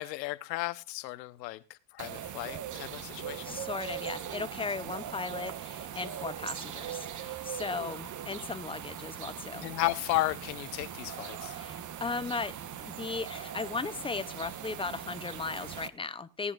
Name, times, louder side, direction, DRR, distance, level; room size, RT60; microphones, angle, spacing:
voice 1, 0.0-3.6 9.6-11.6, left 18 dB, 85° left, 1.1 m, -34 dB
sound 1, 2.0-15.9, right 10 dB, 35° right, 1.1 m, -40 dB
voice 2, 3.4-9.7 11.4-16.5, left 4 dB, 10° left, 0.6 m, -37 dB
19.5 x 10.0 x 2.5 m
supercardioid pair, 100°, 49 cm